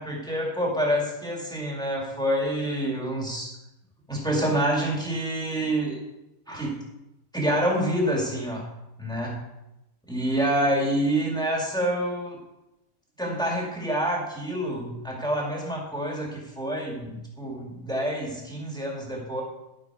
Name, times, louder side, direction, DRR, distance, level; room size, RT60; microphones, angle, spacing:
voice 1, 0.0-3.6 4.1-6.0 6.5-6.8 7.3-8.7 9.0-9.4 10.1-12.4 13.2-19.4, right 1 dB, 5° left, -2 dB, 1.8 m, -27 dB
12.0 x 5.7 x 4.7 m, 0.92 s
omnidirectional pair, 1.5 m